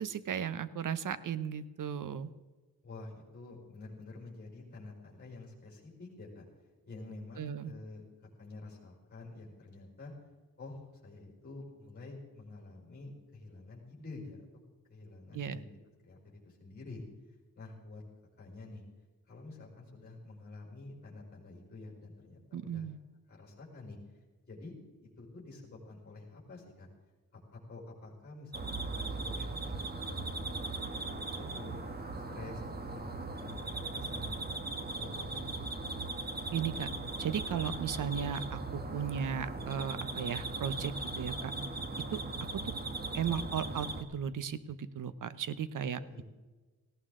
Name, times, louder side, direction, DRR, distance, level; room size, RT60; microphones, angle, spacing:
voice 1, 0.0-2.3 7.4-7.7 15.3-15.6 22.5-23.0 36.5-36.9 37.2-41.5 42.1-42.2 42.6-42.7 43.1-43.9 44.1-46.0, right 8 dB, 60° right, 15 dB, 0.8 m, -36 dB
voice 2, 2.8-6.5 6.8-10.1 10.6-14.4 14.9-15.7 16.0-17.0 17.5-18.0 18.4-18.8 19.3-22.9 23.3-24.0 24.4-24.7 25.0-26.9 27.3-29.7 30.1-30.7 30.9-32.6 32.9-34.4 34.9-35.7 45.8-46.2, left 3 dB, 25° left, -3 dB, 4.9 m, -48 dB
sound 1, 28.5-44.0, right 3 dB, 25° right, 1.3 m, -38 dB
18.0 x 17.0 x 3.8 m, 1.3 s
wide cardioid pair, 155°, 35 cm